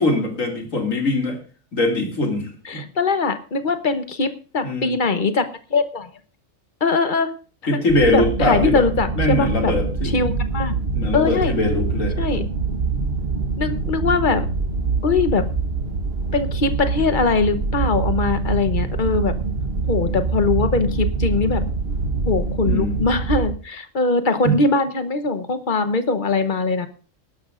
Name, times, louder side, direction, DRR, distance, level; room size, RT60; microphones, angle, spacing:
voice 1, 0.0-1.4 1.7-2.8 4.6-4.9 7.7-8.9 9.1-10.1 10.9-12.5 22.6-23.0 24.4-24.6, left 1 dB, 70° left, 2 dB, 2.9 m, -22 dB
voice 2, 2.6-6.1 6.8-7.3 7.6-7.8 8.1-9.7 10.0-10.7 11.1-11.5 12.2-12.4 13.6-14.4 15.0-15.4 16.3-19.4 19.9-21.6 22.3-26.9, left 4 dB, 40° left, 10 dB, 1.1 m, -21 dB
sound 1, 7.9-23.5, right 4 dB, 45° right, 1.3 m, -24 dB
21.0 x 11.5 x 2.5 m, 0.36 s
omnidirectional pair, 1.4 m